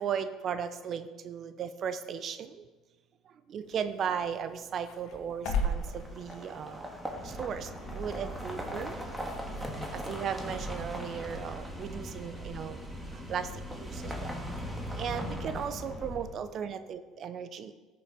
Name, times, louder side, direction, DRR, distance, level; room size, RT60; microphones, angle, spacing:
voice 1, 0.0-2.6 3.3-6.8 7.2-9.0 9.9-12.8 13.1-14.4 15.0-17.7, right 7 dB, 50° right, 11 dB, 0.6 m, -36 dB
sound 1, 3.6-9.9, left 1 dB, 70° left, 1.9 m, -39 dB
sound 2, 5.6-16.4, equal, 10° right, 2.1 m, -41 dB
sound 3, 7.1-16.2, equal, 20° left, 3.8 m, -43 dB
12.0 x 6.9 x 5.0 m, 1.3 s
supercardioid pair, 80°, 0 cm